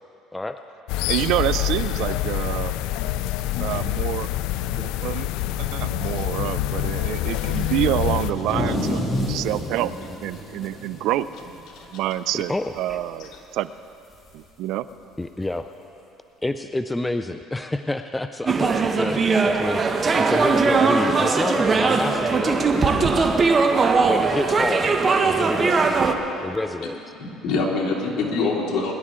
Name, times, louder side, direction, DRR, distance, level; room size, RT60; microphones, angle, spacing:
sound 1, 0.9-8.3, left 13 dB, 80° left, 0.4 m, -26 dB
voice 1, 1.1-2.8 3.6-4.3 4.6-5.3 5.6-9.0 9.3-9.9 10.2-11.3 11.9-13.7 14.3-14.9, right 13 dB, 70° right, 15 dB, 0.4 m, -27 dB
voice 2, 7.2-7.6 11.7-11.8 25.7-25.8 27.1-28.9, left 3 dB, 60° left, -3 dB, 3.0 m, -25 dB
sound 2, 8.1-11.8 12.2-12.3 12.7-13.1 14.3-14.4 15.4-15.5, left 1 dB, 25° left, 2.8 m, -29 dB
voice 3, 12.3-13.0 15.2-15.7 16.4-19.8 20.2-23.4 24.1-26.0 26.4-27.0, left 2 dB, 10° left, 8 dB, 0.4 m, -29 dB
sound 3, 18.5-26.1, right 4 dB, 30° right, 0.9 m, -20 dB
21.5 x 11.5 x 3.7 m, 2.7 s
cardioid pair, 120°, 0 cm